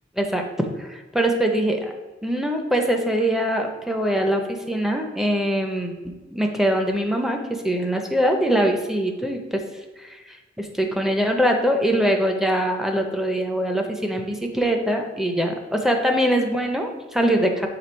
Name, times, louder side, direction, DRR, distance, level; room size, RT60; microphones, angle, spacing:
voice 1, 0.2-1.9 2.2-9.6 10.0-17.7, equal, ahead, 3 dB, 0.5 m, -23 dB
6.8 x 3.2 x 4.4 m, 1.2 s
head